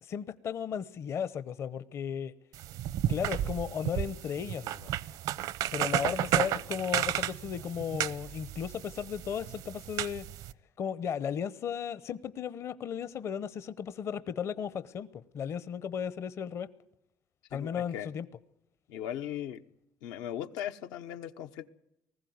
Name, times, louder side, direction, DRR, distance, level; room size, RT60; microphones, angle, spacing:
voice 1, 0.0-2.3 3.1-4.9 5.7-10.2 10.8-16.7 17.5-18.3, left 8 dB, 45° left, 15 dB, 0.8 m, -35 dB
sound 1, 2.5-10.5, right 12 dB, 70° right, 0.7 m, -33 dB
voice 2, 17.5-18.1 18.9-19.6 20.0-21.7, left 10 dB, 90° left, 8 dB, 1.1 m, -38 dB
20.0 x 15.5 x 9.4 m, 0.83 s
cardioid pair, 135°, 7 cm